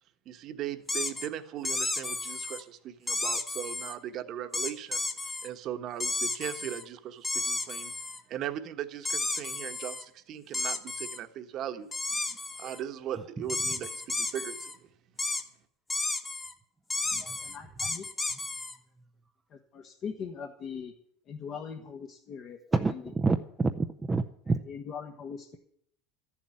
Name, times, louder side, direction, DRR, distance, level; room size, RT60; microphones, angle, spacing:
voice 1, 0.2-7.9 8.3-11.9 12.6-14.7, right 10 dB, 40° right, 8 dB, 1.2 m, -38 dB
sound 1, 0.9-1.3 1.6-2.6 3.1-3.9 4.5-5.5 6.0-6.8 7.2-8.2 9.0-10.0 10.5-11.2 11.9-12.8 13.5-14.7 15.2-15.4 15.9-16.5 16.9-18.7, left 2 dB, 15° left, 1.1 m, -32 dB
voice 2, 17.2-18.0 19.5-20.9 21.3-22.6 22.9-23.1 24.5-25.6, left 6 dB, 35° left, 2 dB, 1.3 m, -41 dB
voice 3, 22.7-24.6, right 3 dB, 10° right, 5 dB, 0.6 m, -28 dB
13.5 x 7.3 x 9.9 m, 0.68 s
supercardioid pair, 145°, 0 cm